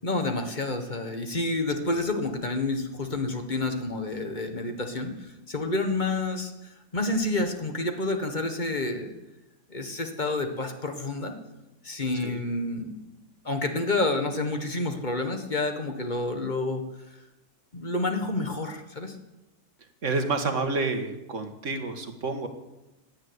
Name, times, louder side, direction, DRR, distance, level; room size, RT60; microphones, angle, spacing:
voice 1, 0.0-9.1 9.7-11.3 11.8-13.0 13.4-16.8 17.7-19.2, left 2 dB, 25° left, 6 dB, 1.4 m, -29 dB
voice 2, 20.0-22.5, right 3 dB, 40° right, 7 dB, 1.8 m, -29 dB
16.5 x 10.0 x 8.1 m, 0.97 s
omnidirectional pair, 2.1 m